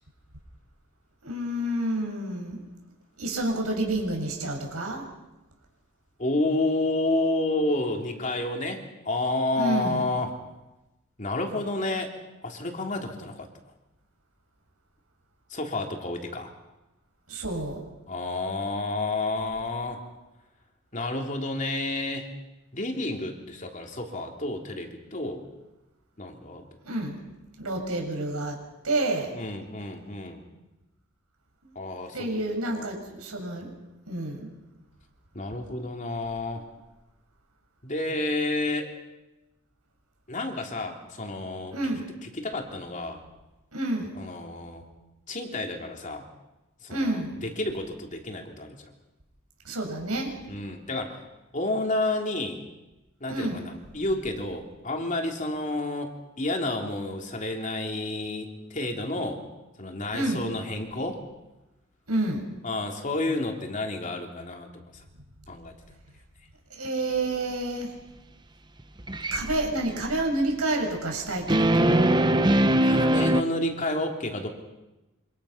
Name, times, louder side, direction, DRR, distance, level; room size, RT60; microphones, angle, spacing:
voice 1, 1.2-2.6 3.2-5.0 9.6-10.1 17.3-17.8 26.8-27.2 27.6-28.6 28.8-29.3 31.6-31.7 32.1-33.7 34.1-34.5 41.7-42.1 43.7-44.2 46.9-47.4 49.7-50.3 53.3-53.7 60.1-60.6 62.1-62.5 66.7-67.9 69.3-72.3, right 1 dB, 90° right, 2 dB, 7.0 m, -29 dB
voice 2, 6.2-10.3 11.2-12.1 12.4-13.5 15.5-16.5 18.1-20.0 20.9-22.3 22.7-25.5 26.2-26.6 29.3-30.4 31.7-32.3 32.7-32.9 35.3-36.6 37.8-38.9 40.3-41.8 42.3-43.2 44.1-44.8 45.3-46.2 46.8-48.8 50.5-51.2 51.5-52.6 53.2-59.4 59.8-61.2 62.6-65.0 65.5-65.7 72.8-74.5, left 2 dB, 35° left, 2 dB, 3.3 m, -30 dB
sound 1, 69.0-69.4 71.5-73.4, right 1 dB, 20° right, 1.0 m, -21 dB
28.0 x 26.5 x 5.9 m, 1.0 s
head